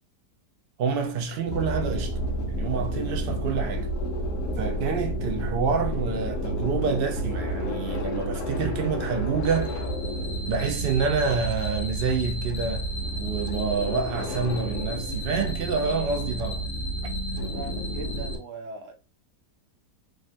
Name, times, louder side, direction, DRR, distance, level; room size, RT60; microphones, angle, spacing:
voice 1, 0.8-2.2 2.5-3.9 4.6-9.7 10.5-12.9 13.2-16.7 17.3-17.4, right 5 dB, 90° right, 0.5 m, -28 dB
sound 1, 1.5-18.4, right 1 dB, 65° left, 1.2 m, -30 dB
voice 2, 17.5-18.9, right 3 dB, 60° right, 0.9 m, -39 dB
3.6 x 2.2 x 2.5 m
omnidirectional pair, 1.8 m